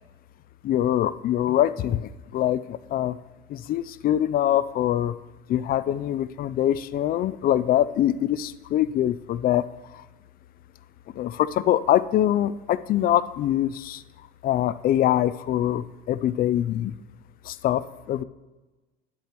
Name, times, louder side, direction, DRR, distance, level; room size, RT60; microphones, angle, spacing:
voice 1, 0.6-3.2 3.5-5.1 5.5-9.7 9.9-10.0 11.1-14.0 14.4-17.0 17.4-18.2, left 12 dB, 50° left, 15 dB, 0.4 m, -24 dB
10.5 x 8.1 x 2.9 m, 1.2 s
cardioid pair, 110°, 20 cm